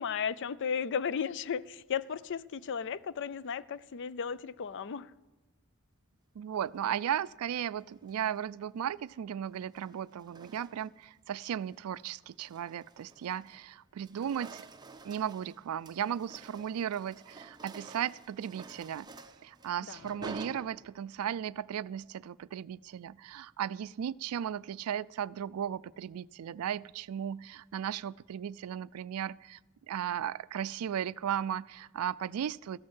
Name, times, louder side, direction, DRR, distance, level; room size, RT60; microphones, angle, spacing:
voice 1, 0.0-5.1 19.9-20.0, left 7 dB, 55° left, 0.4 m, -35 dB
voice 2, 6.4-14.7 15.0-19.1 19.4-29.6 29.9-32.8, right 9 dB, 80° right, 0.3 m, -36 dB
sound 1, 7.9-8.4 9.5-11.0 11.5-11.8 12.2-13.7 13.9-21.3, right 3 dB, 20° right, 0.6 m, -50 dB
14.0 x 7.6 x 7.3 m
head